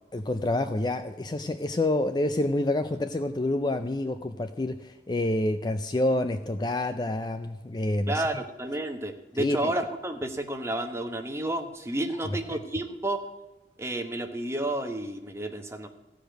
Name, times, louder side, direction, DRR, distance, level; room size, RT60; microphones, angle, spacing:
voice 1, 0.1-8.2 9.4-9.7, left 1 dB, 25° left, 9 dB, 0.4 m, -28 dB
voice 2, 8.1-13.3 13.8-15.9, right 1 dB, 15° right, 5 dB, 1.0 m, -31 dB
14.5 x 5.1 x 8.9 m, 1.1 s
head